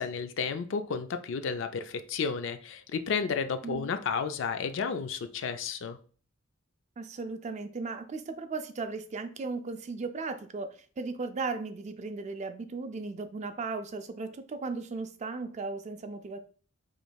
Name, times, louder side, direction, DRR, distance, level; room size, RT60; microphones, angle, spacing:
voice 1, 0.0-6.0, left 5 dB, 60° left, 9 dB, 0.4 m, -32 dB
voice 2, 7.0-16.4, right 3 dB, 35° right, 9 dB, 0.4 m, -36 dB
5.0 x 3.1 x 2.3 m, 0.42 s
head